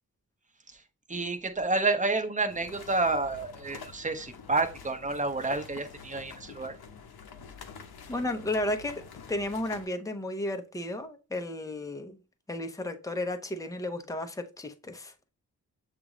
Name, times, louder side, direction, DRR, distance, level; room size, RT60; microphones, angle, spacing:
voice 1, 1.1-6.7, right 3 dB, 20° right, 7 dB, 0.9 m, -29 dB
sound 1, 2.5-9.9, left 5 dB, 80° left, 0.8 m, -47 dB
voice 2, 8.1-9.0 9.3-12.2 12.5-15.1, left 1 dB, 10° left, 6 dB, 0.7 m, -33 dB
6.8 x 2.6 x 3.0 m, 0.32 s
cardioid pair, 55°, 37 cm